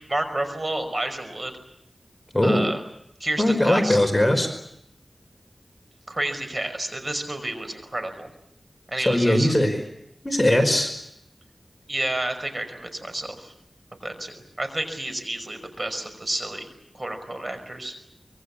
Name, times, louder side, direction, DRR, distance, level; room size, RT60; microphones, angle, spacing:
voice 1, 0.1-1.5 2.4-2.8 3.2-4.0 6.1-8.3 8.9-9.5 11.9-13.5 14.0-16.7 16.9-18.0, right 1 dB, 40° right, 8 dB, 5.4 m, -30 dB
voice 2, 3.4-4.5 9.0-9.7 10.2-10.9, left 1 dB, 15° left, 4 dB, 5.0 m, -20 dB
25.5 x 23.5 x 8.6 m, 0.78 s
wide cardioid pair, 60°, 0 cm